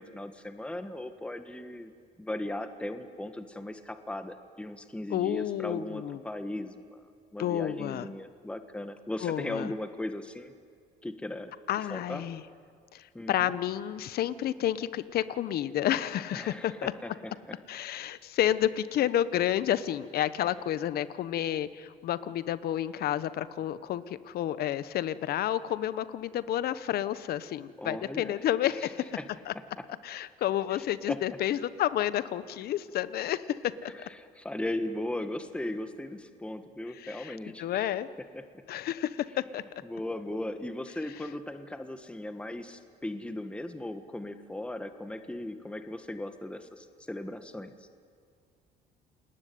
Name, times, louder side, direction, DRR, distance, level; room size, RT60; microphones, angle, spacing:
voice 1, 0.0-1.9 2.2-7.0 7.3-10.5 11.0-11.5 11.9-12.2 13.1-13.5 16.3-17.1 17.5-17.6 27.8-28.3 28.6-28.9 29.2-29.3 29.8-29.9 30.7-31.2 33.8-37.8 38.3-38.4 39.8-47.7, left 1 dB, 5° left, 9 dB, 1.5 m, -37 dB
voice 2, 5.1-6.2 7.4-8.1 9.2-9.7 11.7-12.4 12.9-16.9 17.7-29.1 29.5-29.6 30.0-33.9 36.9-38.1 38.7-39.6, left 11 dB, 65° left, 15 dB, 1.0 m, -30 dB
28.5 x 20.5 x 9.5 m, 2.1 s
cardioid pair, 110°, 17 cm